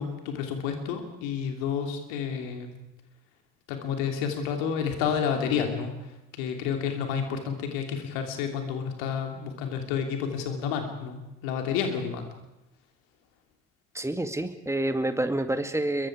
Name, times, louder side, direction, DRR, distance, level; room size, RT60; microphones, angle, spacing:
voice 1, 0.0-2.8 3.7-12.3, left 7 dB, 70° left, 4 dB, 3.1 m, -30 dB
voice 2, 13.9-16.1, right 1 dB, 5° right, 8 dB, 2.1 m, -28 dB
27.0 x 23.0 x 4.9 m, 0.95 s
figure-of-eight pair, 45°, 45 cm